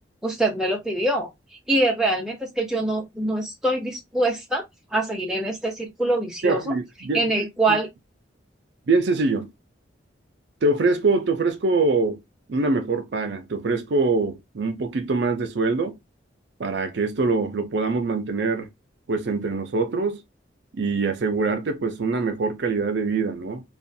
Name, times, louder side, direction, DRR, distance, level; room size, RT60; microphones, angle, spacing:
voice 1, 0.2-1.3 1.7-4.6 4.9-6.7 7.1-7.9, right 2 dB, 5° right, 0.7 m, -24 dB
voice 2, 6.4-7.5 8.9-9.5 10.6-12.2 12.5-16.0 16.6-18.7 19.1-20.2 20.7-23.6, right 3 dB, 65° right, 0.5 m, -24 dB
2.4 x 2.2 x 2.6 m
head